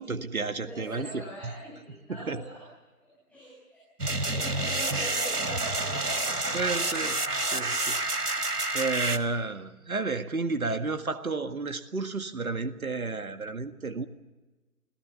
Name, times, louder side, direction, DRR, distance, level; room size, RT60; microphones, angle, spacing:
voice 1, 0.0-1.5 2.1-2.4 6.5-14.1, right 3 dB, 70° right, 9 dB, 1.9 m, -32 dB
voice 2, 0.6-2.6 3.3-3.8 4.1-6.6, equal, 5° left, -7 dB, 6.4 m, -43 dB
sound 1, 4.0-9.2, right 2 dB, 85° right, 1.9 m, -29 dB
29.0 x 18.5 x 7.0 m, 1.2 s
figure-of-eight pair, 145°, 45 cm